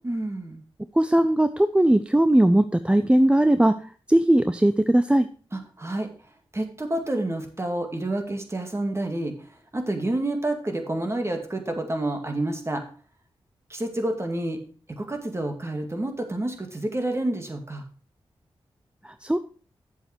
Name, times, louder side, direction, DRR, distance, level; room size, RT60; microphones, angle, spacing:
voice 1, 0.0-0.6 5.5-6.1 6.5-9.5 9.7-12.8 13.7-14.6 15.0-17.8, right 1 dB, 25° right, 4 dB, 2.3 m, -29 dB
voice 2, 1.0-3.7 4.1-5.3 19.0-19.4, right 1 dB, 10° right, 10 dB, 0.5 m, -19 dB
8.2 x 7.6 x 4.5 m, 0.40 s
cardioid pair, 60°, 10 cm